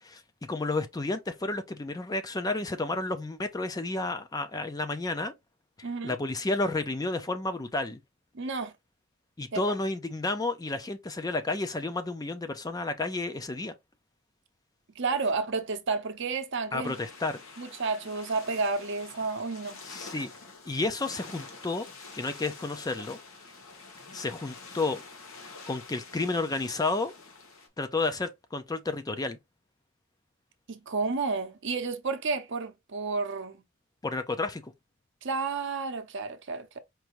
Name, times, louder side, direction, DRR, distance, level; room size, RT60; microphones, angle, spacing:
voice 1, 0.0-5.3 5.8-8.0 9.4-13.7 16.7-17.4 19.9-20.3 20.7-21.9 22.2-23.2 24.1-25.0 25.7-27.1 27.8-29.4 34.0-34.7, left 2 dB, 20° left, 0.4 m, -31 dB
voice 2, 5.8-6.2 8.3-8.7 9.5-9.7 15.0-16.9 17.6-19.8 30.7-33.6 35.2-36.8, right 4 dB, 60° right, 0.7 m, -31 dB
sound 1, 16.8-27.7, left 4 dB, 85° left, 1.2 m, -47 dB
4.6 x 2.6 x 2.9 m
head